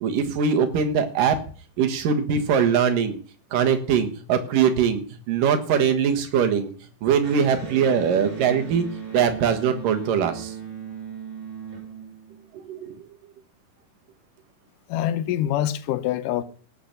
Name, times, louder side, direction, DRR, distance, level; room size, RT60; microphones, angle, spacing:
voice 1, 0.0-1.4 1.8-3.2 3.5-6.7 7.0-8.8 9.1-10.6 12.7-12.9, right 7 dB, 80° right, 3.1 m, -22 dB
Electric guitar, 7.2-12.7, right 7 dB, 35° right, 6.3 m, -37 dB
voice 2, 14.9-16.4, left 12 dB, 80° left, 2.4 m, -25 dB
17.5 x 6.0 x 6.7 m
omnidirectional pair, 3.8 m